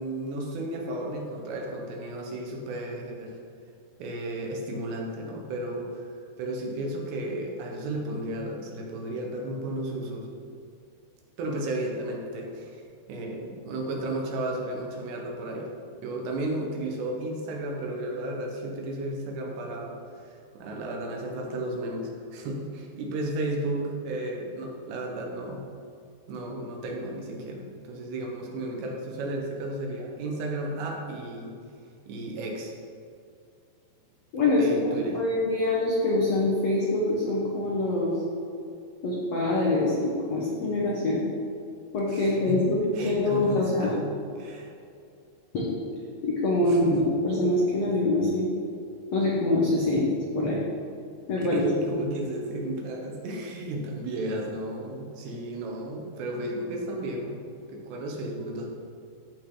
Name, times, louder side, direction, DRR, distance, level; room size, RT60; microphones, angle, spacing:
voice 1, 0.0-3.3 4.0-6.1 6.4-10.3 11.4-12.8 13.1-15.7 16.0-19.9 20.2-25.7 26.3-31.6 32.1-32.7 34.6-35.2 42.1-42.6 42.9-44.7 46.6-47.0 51.4-57.4 57.7-58.7, right 1 dB, 80° right, 0 dB, 3.4 m, -33 dB
voice 2, 34.3-38.1 39.0-41.2 41.9-42.8 43.0-43.9 45.5-45.8 46.2-48.5 49.1-50.1 50.3-50.6 51.3-51.7, left 2 dB, 85° left, -5 dB, 1.4 m, -25 dB
14.5 x 5.6 x 3.8 m, 2.4 s
omnidirectional pair, 4.9 m